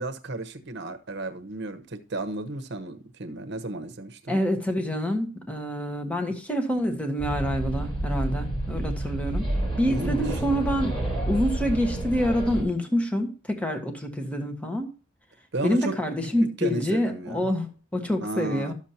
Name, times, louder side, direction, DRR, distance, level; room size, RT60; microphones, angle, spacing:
voice 1, 0.0-4.4 9.9-10.3 15.5-15.9 16.6-17.5 18.2-18.7, right 2 dB, 60° right, 1.0 m, -33 dB
voice 2, 4.3-9.5 9.8-10.9 11.3-14.9 15.6-18.7, equal, 5° left, 1.3 m, -27 dB
sound 1, 7.2-12.6, right 1 dB, 25° left, 3.2 m, -29 dB
12.0 x 7.2 x 2.8 m
head